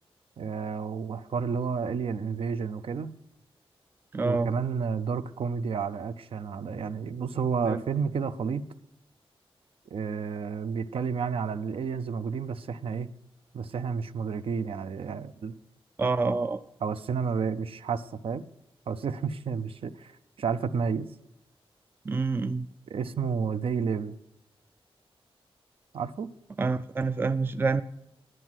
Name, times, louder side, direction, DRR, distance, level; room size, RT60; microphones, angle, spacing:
voice 1, 0.4-3.2 4.2-8.7 9.9-13.1 13.5-15.5 16.2-16.3 16.8-18.5 18.9-21.1 22.9-24.2 25.9-26.3, right 6 dB, 70° right, 12 dB, 0.6 m, -31 dB
voice 2, 4.1-4.5 7.7-7.8 16.0-16.6 22.1-22.7 26.6-27.8, right 3 dB, 20° right, 12 dB, 0.3 m, -27 dB
11.0 x 9.2 x 6.1 m, 0.81 s
wide cardioid pair, 180°, 10 cm